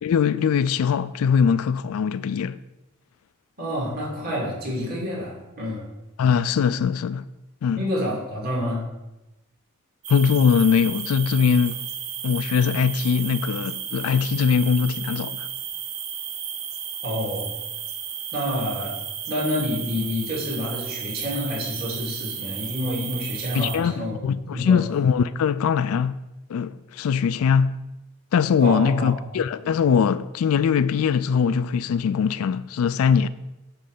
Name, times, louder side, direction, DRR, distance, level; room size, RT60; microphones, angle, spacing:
voice 1, 0.0-2.6 6.2-7.3 7.6-7.8 10.1-11.8 12.2-15.5 23.5-26.2 26.5-27.8 28.3-33.3, left 6 dB, 70° left, 0.3 m, -21 dB
voice 2, 3.6-5.8 7.7-8.8 17.0-17.5 18.3-19.0 19.3-24.1 24.5-24.8 28.6-29.2, equal, 40° right, 2.8 m, -28 dB
sound 1, 10.0-23.8, right 8 dB, 70° right, 1.0 m, -33 dB
9.2 x 3.3 x 6.6 m
head